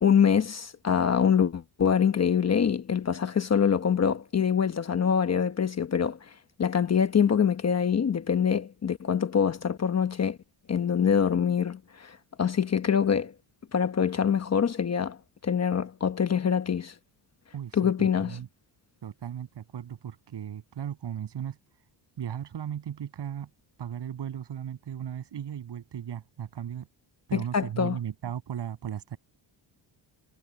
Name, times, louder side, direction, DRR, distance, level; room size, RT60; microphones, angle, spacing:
voice 1, 0.0-6.2 6.6-10.4 10.7-13.3 13.7-15.2 15.4-16.9 17.7-18.3 27.3-28.0, left 7 dB, 35° left, 1.1 m, -25 dB
voice 2, 17.5-18.5 19.0-21.6 22.2-23.5 23.8-26.9 27.3-29.2, right 9 dB, 60° right, 7.2 m, -36 dB
cardioid pair, 135°, 48 cm